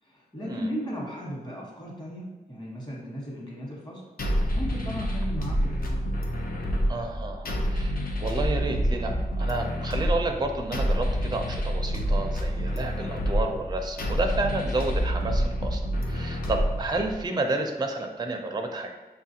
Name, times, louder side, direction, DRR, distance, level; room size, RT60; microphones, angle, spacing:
voice 1, 0.0-4.0 4.3-6.1, equal, 25° left, -4 dB, 1.2 m, -36 dB
sound 1, 4.2-17.2, equal, 60° left, 0.6 m, -28 dB
voice 2, 6.9-15.8 16.1-18.9, right 2 dB, 25° right, 4 dB, 0.4 m, -30 dB
5.4 x 2.4 x 2.8 m, 1.2 s
wide cardioid pair, 95°, 17 cm